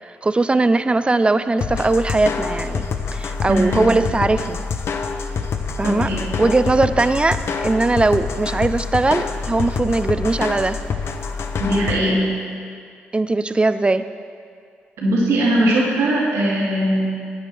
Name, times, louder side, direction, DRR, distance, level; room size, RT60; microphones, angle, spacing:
voice 1, 0.0-2.8 3.1-4.6 5.8-6.1 6.4-10.8 13.1-14.0, right 2 dB, 25° right, 12 dB, 0.5 m, -19 dB
sound 1, 1.6-12.0, left 5 dB, 65° left, 0.7 m, -26 dB
voice 2, 3.5-3.9 5.8-6.2 11.6-12.3 15.0-17.1, right 1 dB, 80° right, -5 dB, 2.4 m, -20 dB
14.0 x 9.0 x 3.4 m, 2.2 s
supercardioid pair, 50°, 5 cm